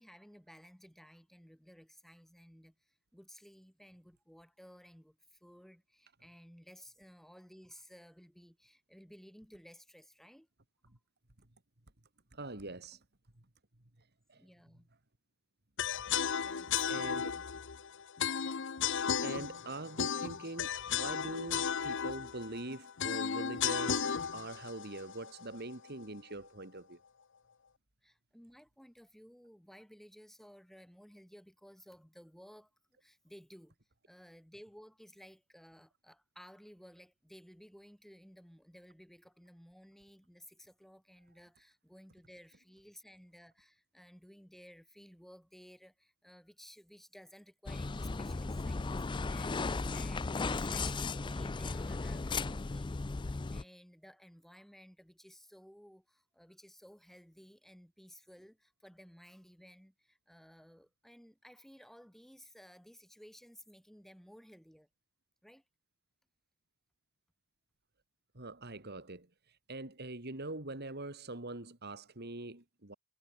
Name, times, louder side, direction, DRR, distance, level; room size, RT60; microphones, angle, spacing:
voice 1, 0.0-10.5 12.9-13.0 14.3-14.9 16.4-17.6 20.2-20.4 28.0-32.7 33.0-33.8 34.1-64.9 65.4-65.6, equal, ahead, 7.4 m, -57 dB
voice 2, 12.3-13.0 14.3-14.4 16.9-17.4 19.2-24.1 24.3-27.0 68.3-73.0, right 2 dB, 45° right, 2.9 m, -43 dB
sound 1, 15.8-25.9, left 7 dB, 55° left, 0.8 m, -35 dB
sound 2, 47.7-53.6, left 3 dB, 20° left, 0.4 m, -36 dB
head